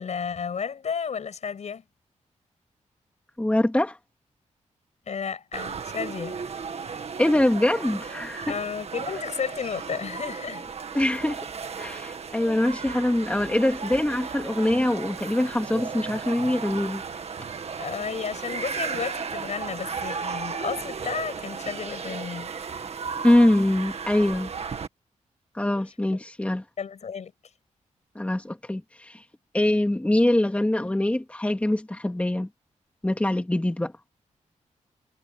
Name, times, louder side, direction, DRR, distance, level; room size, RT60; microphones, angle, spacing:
voice 1, 0.0-1.8 5.1-6.4 8.5-10.6 17.8-22.5 26.8-27.3, left 6 dB, 65° left, 6.1 m, -32 dB
voice 2, 3.4-4.0 7.2-8.6 10.9-11.4 11.8-17.0 23.2-24.5 25.5-26.6 28.1-29.2 29.5-32.5 33.0-33.9, left 1 dB, 10° left, 2.5 m, -23 dB
sound 1, 5.5-24.9, right 5 dB, 55° right, 1.9 m, -35 dB
wide cardioid pair, 105°, 13 cm